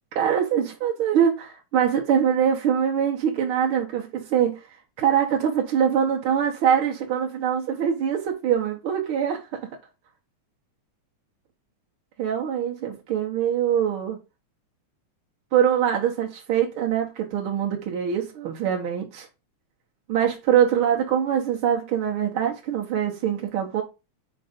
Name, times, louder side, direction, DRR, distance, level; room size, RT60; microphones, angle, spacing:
voice 1, 0.1-9.6 12.2-14.2 15.5-19.3 20.1-23.8, right 8 dB, 65° right, 1.4 m, -23 dB
5.3 x 4.5 x 5.1 m
omnidirectional pair, 3.5 m